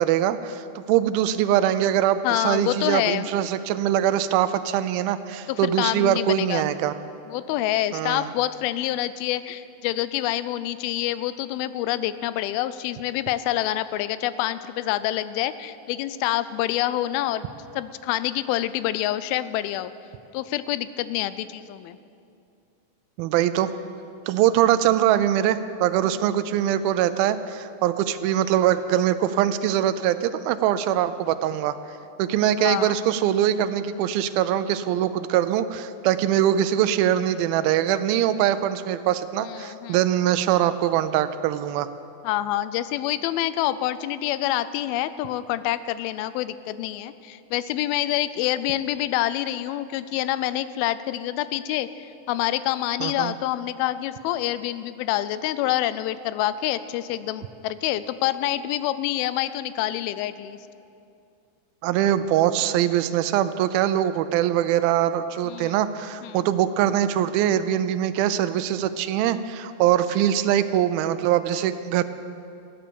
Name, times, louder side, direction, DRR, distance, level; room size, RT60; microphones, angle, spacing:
voice 1, 0.0-6.9 7.9-8.3 23.2-23.7 24.3-31.7 32.2-41.9 53.0-53.3 61.8-72.0, right 11 dB, 85° right, 12 dB, 2.4 m, -22 dB
voice 2, 2.2-3.3 5.5-6.7 7.3-19.9 20.3-22.0 32.6-33.0 39.4-40.0 42.2-60.6 65.4-65.8 66.2-66.4, left 14 dB, 90° left, 15 dB, 2.4 m, -27 dB
16.0 x 10.0 x 6.9 m, 2.6 s
omnidirectional pair, 4.2 m